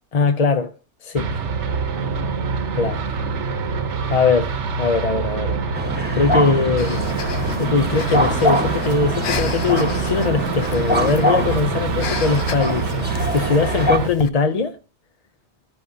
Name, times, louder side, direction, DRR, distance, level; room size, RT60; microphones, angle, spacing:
voice 1, 0.1-0.7 1.1-1.3 2.7-3.0 4.1-5.6 6.1-7.0 7.5-14.8, left 4 dB, 45° left, 0.6 m, -21 dB
sound 1, 1.2-14.1, right 5 dB, 80° right, 1.3 m, -25 dB
sound 2, 5.7-14.0, equal, 10° right, 1.2 m, -24 dB
Breathing, 6.8-14.3, left 6 dB, 65° left, 1.0 m, -33 dB
14.5 x 11.5 x 2.7 m
omnidirectional pair, 1.2 m